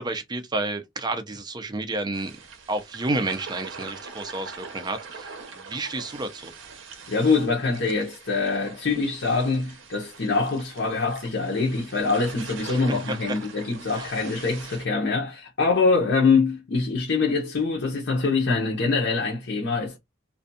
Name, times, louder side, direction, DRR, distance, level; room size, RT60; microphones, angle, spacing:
voice 1, 0.0-2.3 2.7-6.5 12.7-13.4 14.0-14.1, right 2 dB, 20° right, 0.4 m, -30 dB
sound 1, 2.1-14.9, right 5 dB, 75° right, 0.6 m, -43 dB
voice 2, 7.1-20.0, left 4 dB, 65° left, 0.7 m, -24 dB
2.5 x 2.2 x 2.6 m
head